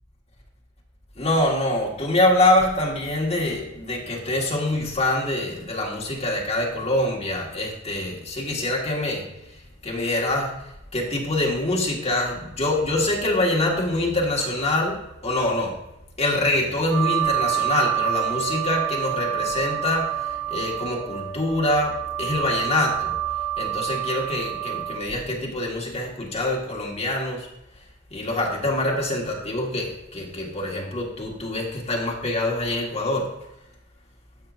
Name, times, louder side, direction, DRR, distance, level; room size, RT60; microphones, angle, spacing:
voice 1, 1.2-9.3 9.8-10.5 10.9-15.7 16.2-23.1 23.6-27.5 28.1-33.3, left 1 dB, 35° left, -2 dB, 1.8 m, -25 dB
sound 1, 16.9-25.0, right 12 dB, 45° right, 1.5 m, -27 dB
13.0 x 5.7 x 2.6 m, 0.89 s
head